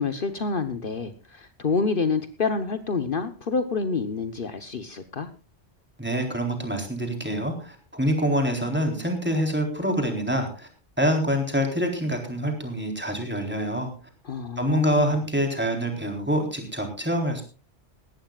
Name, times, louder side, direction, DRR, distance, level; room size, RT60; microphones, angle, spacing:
voice 1, 0.0-5.3 14.2-15.1, left 4 dB, 55° left, 9 dB, 1.2 m, -28 dB
voice 2, 6.0-10.7 11.0-13.9 14.6-17.4, equal, 10° right, 3 dB, 4.0 m, -26 dB
20.0 x 16.5 x 2.4 m, 0.35 s
omnidirectional pair, 1.1 m